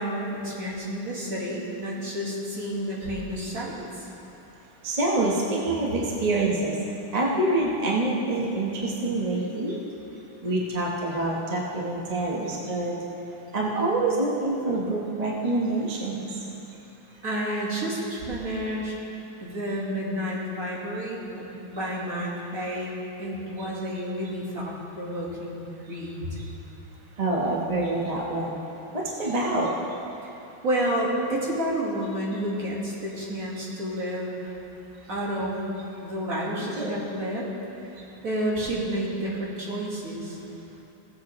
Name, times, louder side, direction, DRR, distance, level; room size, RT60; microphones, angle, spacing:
voice 1, 0.0-4.1 17.2-18.9 19.4-26.4 30.2-30.3 30.6-34.5 35.1-35.7 36.0-37.5 37.9-40.4, equal, 45° right, -5 dB, 2.0 m, -30 dB
voice 2, 4.8-6.8 7.1-9.8 10.4-12.9 13.5-16.4 27.2-28.6 28.9-29.7 36.7-36.9, right 2 dB, 30° right, -3 dB, 0.8 m, -26 dB
17.0 x 8.0 x 3.1 m, 2.9 s
omnidirectional pair, 2.2 m